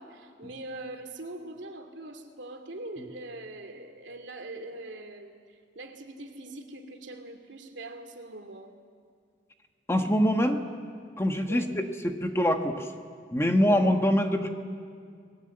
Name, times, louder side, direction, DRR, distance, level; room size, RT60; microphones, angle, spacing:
voice 1, 0.0-8.7 11.5-11.7 13.7-13.8, right 2 dB, 80° right, 5 dB, 2.5 m, -42 dB
voice 2, 9.9-10.6 11.2-11.9 12.2-12.9 13.3-14.5, equal, 15° left, 5 dB, 1.4 m, -24 dB
27.5 x 20.0 x 7.9 m, 2.1 s
head